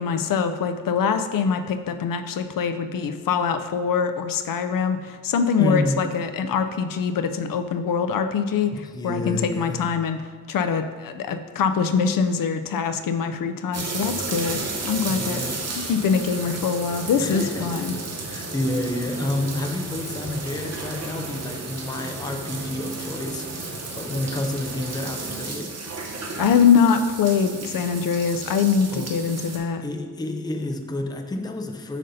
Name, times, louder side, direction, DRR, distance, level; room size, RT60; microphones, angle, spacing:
voice 1, 0.0-10.2 10.5-15.4 15.8-17.9 26.4-29.8, left 6 dB, 70° left, 8 dB, 0.5 m, -23 dB
voice 2, 5.6-6.1 8.7-9.9 15.1-15.7 17.2-25.8 28.9-29.4 29.8-32.0, left 1 dB, 10° left, 5 dB, 0.4 m, -30 dB
sound 1, 13.7-29.6, right 3 dB, 45° right, 0.8 m, -33 dB
7.4 x 5.3 x 2.7 m, 1.5 s
wide cardioid pair, 125°, 35 cm